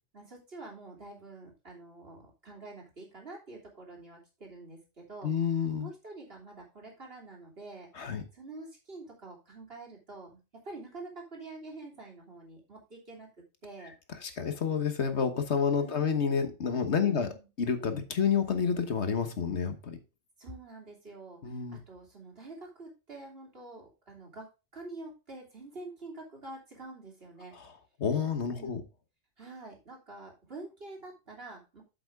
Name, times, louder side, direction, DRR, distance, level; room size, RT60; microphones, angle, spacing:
voice 1, 0.1-5.3 5.8-7.9 8.3-13.3 13.6-13.9 15.8-16.1 16.9-17.5 20.4-27.5 28.5-28.8 29.4-31.8, right 2 dB, 55° right, -1 dB, 3.3 m, -47 dB
voice 2, 5.2-5.9 8.0-8.2 14.2-17.3 17.6-20.0 21.4-21.8 28.0-28.8, left 6 dB, 70° left, 8 dB, 1.5 m, -29 dB
7.8 x 7.8 x 3.5 m, 0.29 s
omnidirectional pair, 1.2 m